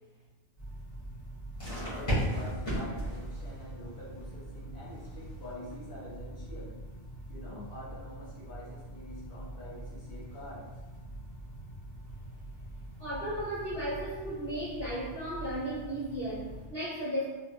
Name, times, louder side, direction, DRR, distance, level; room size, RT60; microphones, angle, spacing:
sound 1, 0.6-16.7, right 1 dB, 30° left, 1.4 m, -40 dB
voice 1, 1.8-6.8 7.2-10.7, left 1 dB, 55° left, -8 dB, 1.4 m, -46 dB
voice 2, 13.0-17.3, equal, 15° right, -15 dB, 1.2 m, -35 dB
3.3 x 2.6 x 2.3 m, 1.2 s
omnidirectional pair, 1.2 m